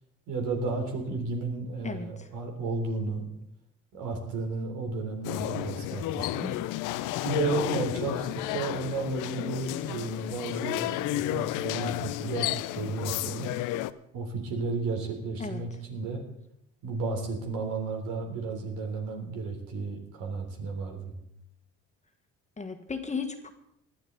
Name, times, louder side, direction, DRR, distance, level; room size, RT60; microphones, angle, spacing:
voice 1, 0.3-3.3 3.9-6.5 7.2-13.5 14.1-16.2 16.8-21.1, right 4 dB, 75° right, 2 dB, 3.7 m, -33 dB
voice 2, 1.8-2.3 15.4-15.6 22.6-23.5, left 4 dB, 20° left, 6 dB, 1.7 m, -35 dB
sound 1, 5.2-13.9, left 15 dB, 75° left, 0.7 m, -32 dB
19.5 x 12.0 x 4.0 m, 0.76 s
supercardioid pair, 80°, 31 cm